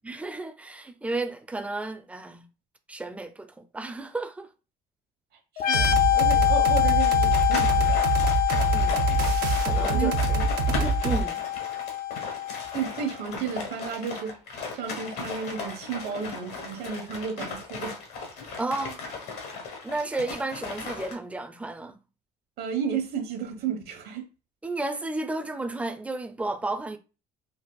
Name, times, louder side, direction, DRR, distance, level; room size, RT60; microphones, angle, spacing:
voice 1, 0.0-2.5 2.9-4.5 7.6-7.7 8.7-9.1 9.6-10.4 10.7-11.4 18.6-19.0 19.8-22.0 24.6-27.0, right 2 dB, 10° right, 0.4 m, -33 dB
voice 2, 5.5-8.1 9.9-10.5 12.7-14.4 14.7-18.0 22.6-24.3, right 7 dB, 70° right, 1.0 m, -32 dB
sound 1, 5.6-13.1, left 13 dB, 60° left, 0.4 m, -25 dB
sound 2, 5.7-11.2, right 4 dB, 90° right, 0.5 m, -25 dB
sound 3, 7.0-21.1, left 4 dB, 75° left, 1.2 m, -37 dB
4.0 x 2.5 x 2.3 m
cardioid pair, 110°, 17 cm